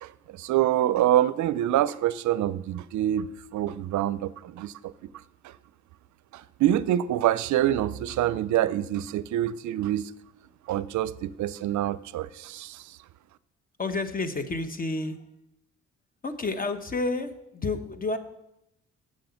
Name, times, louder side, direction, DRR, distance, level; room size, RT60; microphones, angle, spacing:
voice 1, 0.0-4.9 6.3-10.1 10.7-12.8, right 12 dB, 70° right, 17 dB, 0.5 m, -26 dB
voice 2, 13.8-15.2 16.2-18.2, left 3 dB, 30° left, 10 dB, 0.9 m, -30 dB
7.6 x 7.5 x 5.7 m, 0.85 s
cardioid pair, 90°, 30 cm